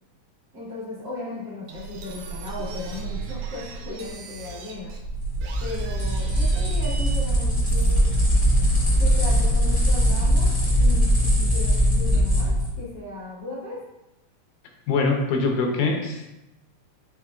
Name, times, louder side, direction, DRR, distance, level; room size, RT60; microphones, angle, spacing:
voice 1, 0.5-4.9 5.6-8.1 9.0-13.8, left 2 dB, 55° right, -11 dB, 1.1 m, -36 dB
sound 1, 1.7-8.5, right 4 dB, 85° right, 2.1 m, -35 dB
sound 2, 5.1-12.7, equal, 35° left, 0.5 m, -21 dB
voice 2, 14.9-16.3, left 3 dB, 90° left, 2 dB, 2.2 m, -23 dB
5.5 x 3.5 x 2.4 m, 0.93 s
omnidirectional pair, 3.6 m